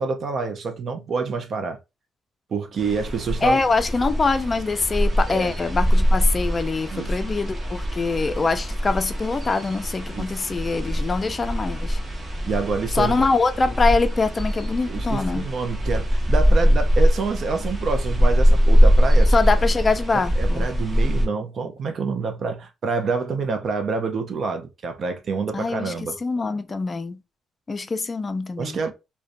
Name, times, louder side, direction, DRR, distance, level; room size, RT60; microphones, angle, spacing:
voice 1, 0.0-1.8 2.5-3.6 5.3-5.5 6.9-7.2 10.1-10.4 12.5-13.2 14.9-19.3 20.1-26.2 28.6-28.9, right 4 dB, 55° right, 0.5 m, -27 dB
sound 1, 2.8-21.3, equal, 30° right, 0.9 m, -22 dB
voice 2, 3.4-12.0 12.9-15.5 19.3-20.7 25.5-26.0 26.2-27.2 27.7-28.8, left 4 dB, 30° left, 0.4 m, -24 dB
2.5 x 2.2 x 2.5 m
cardioid pair, 90°, 0 cm